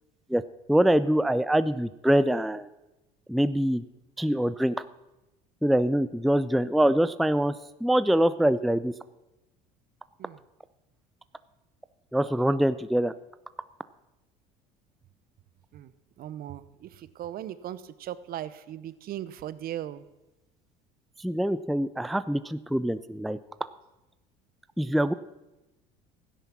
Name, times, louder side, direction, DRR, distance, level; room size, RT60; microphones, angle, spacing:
voice 1, 0.7-2.7 3.3-3.8 4.2-4.8 5.6-7.5 7.8-8.9 12.1-13.1 21.2-23.4 24.8-25.1, right 1 dB, ahead, 14 dB, 0.4 m, -24 dB
voice 2, 16.2-16.9 17.2-20.0, right 11 dB, 55° right, 16 dB, 0.8 m, -38 dB
12.5 x 10.0 x 5.9 m, 1.0 s
hypercardioid pair, 80°, 19 cm